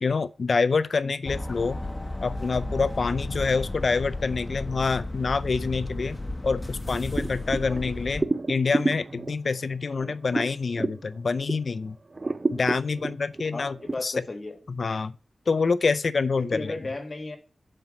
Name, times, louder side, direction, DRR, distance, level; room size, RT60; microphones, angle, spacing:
voice 1, 0.0-1.8 2.2-6.2 6.4-12.0 12.5-13.8 14.0-14.1 14.7-15.2 15.5-16.7, left 4 dB, 70° left, 0.4 m, -26 dB
sound 1, 1.2-8.2, left 2 dB, 30° left, 1.0 m, -34 dB
sound 2, 7.1-11.8 12.1-13.9, right 3 dB, 45° right, 0.4 m, -30 dB
voice 2, 13.5-14.6 16.4-17.4, left 2 dB, 50° left, 1.5 m, -34 dB
6.8 x 4.3 x 5.0 m
cardioid pair, 45°, 0 cm